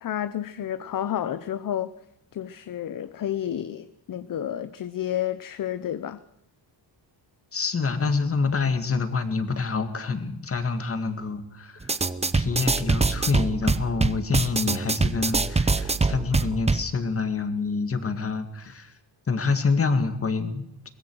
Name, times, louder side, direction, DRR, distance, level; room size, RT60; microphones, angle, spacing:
voice 1, 0.0-1.9 2.3-6.2, left 10 dB, 50° left, 0.8 m, -30 dB
voice 2, 7.5-11.9 12.3-18.9 19.3-20.9, left 4 dB, 30° left, 2.0 m, -27 dB
sound 1, 11.8-16.9, right 3 dB, 15° right, 0.7 m, -24 dB
23.0 x 20.0 x 6.3 m
wide cardioid pair, 150°, 44 cm